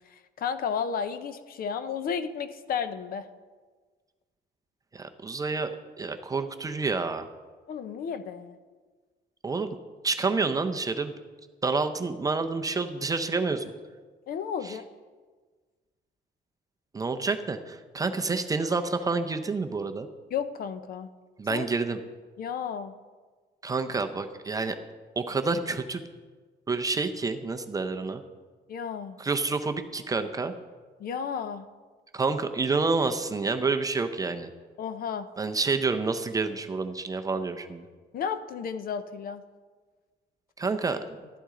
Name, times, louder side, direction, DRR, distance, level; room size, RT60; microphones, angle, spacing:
voice 1, 0.0-3.3 7.7-8.6 14.3-14.9 20.3-21.1 21.5-21.7 22.4-22.9 28.7-29.2 31.0-31.7 34.8-35.3 38.1-39.4, left 7 dB, 50° left, 11 dB, 0.6 m, -33 dB
voice 2, 4.9-5.7 6.0-7.3 9.4-9.8 10.0-11.1 11.6-13.6 14.6-14.8 16.9-20.1 21.4-22.0 23.6-24.8 25.2-26.0 26.7-28.2 29.2-30.5 32.1-34.5 35.4-37.9 40.6-41.0, right 4 dB, 20° right, 7 dB, 0.5 m, -28 dB
12.5 x 11.5 x 3.7 m, 1.4 s
cardioid pair, 165°, 19 cm